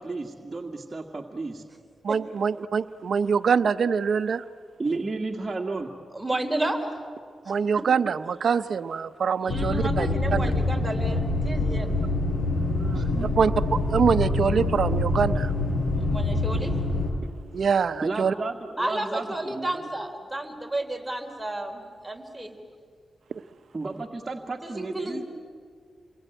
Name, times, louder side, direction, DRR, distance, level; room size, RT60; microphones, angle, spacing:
voice 1, 0.0-1.6 4.8-5.9 12.9-13.4 18.0-19.8 23.7-25.2, right 3 dB, 30° right, -1 dB, 2.0 m, -32 dB
voice 2, 2.0-4.4 7.5-10.5 12.7-13.1 13.4-15.5 17.5-18.3 23.3-23.4, right 6 dB, 65° right, 13 dB, 0.8 m, -24 dB
voice 3, 6.1-6.9 7.5-7.6 9.4-11.9 16.0-16.8 18.8-22.6 24.6-25.3, right 1 dB, 5° right, 2 dB, 3.9 m, -32 dB
sound 1, 9.5-17.1, left 2 dB, 80° left, 5.0 m, -25 dB
29.0 x 22.0 x 9.1 m, 2.1 s
cardioid pair, 85°, 0 cm